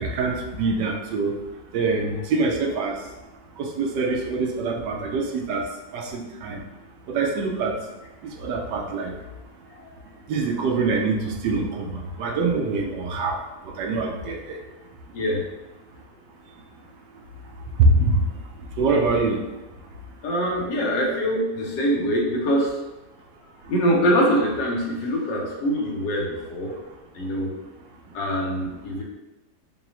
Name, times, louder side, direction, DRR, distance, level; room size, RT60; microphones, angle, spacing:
voice 1, 0.0-1.3 1.7-3.0 3.6-5.6 5.9-6.6 7.1-7.7 8.2-9.1 10.3-13.4 13.7-14.6 17.8-18.2 18.8-19.4, right 3 dB, 80° right, 2 dB, 1.2 m, -24 dB
voice 2, 9.7-10.0 15.1-15.4 20.2-22.8 23.7-26.7 27.1-27.5 28.1-29.0, equal, 85° left, -2 dB, 1.5 m, -24 dB
5.2 x 2.3 x 2.9 m, 1.1 s
omnidirectional pair, 1.9 m